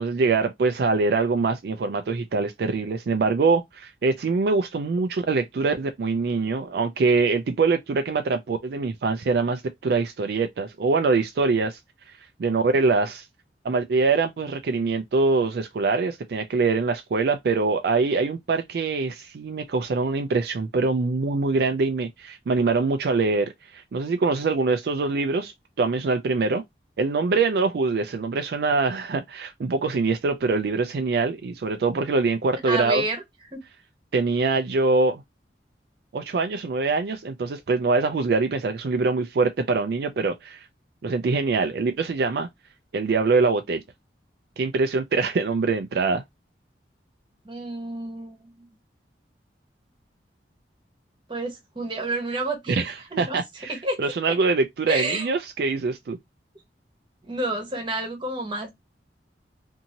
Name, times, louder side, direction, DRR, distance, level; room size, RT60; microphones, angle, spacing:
voice 1, 0.0-11.8 12.1-13.3 13.6-26.6 27.0-33.0 34.1-35.2 36.1-40.7 41.0-42.5 42.9-43.8 44.6-46.2 52.8-56.2, right 4 dB, 60° right, 0.4 m, -24 dB
voice 2, 32.7-33.2 33.5-33.6 47.4-48.7 51.3-52.8 53.1-53.4 53.7-54.0 54.3-54.4 54.9-55.3 57.2-58.7, right 2 dB, 25° right, 1.0 m, -29 dB
2.7 x 2.6 x 2.7 m
head